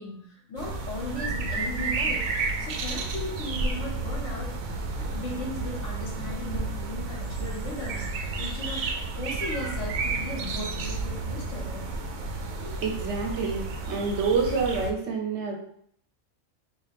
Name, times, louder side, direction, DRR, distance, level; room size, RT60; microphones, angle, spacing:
voice 1, 0.0-8.8 9.2-11.9 12.6-12.8, left 1 dB, 65° left, -2 dB, 1.4 m, -37 dB
sound 1, 0.6-14.9, right 3 dB, 90° right, 1.0 m, -31 dB
voice 2, 12.8-15.5, right 4 dB, 65° right, 2 dB, 1.0 m, -27 dB
4.9 x 2.5 x 3.2 m, 0.65 s
omnidirectional pair, 1.4 m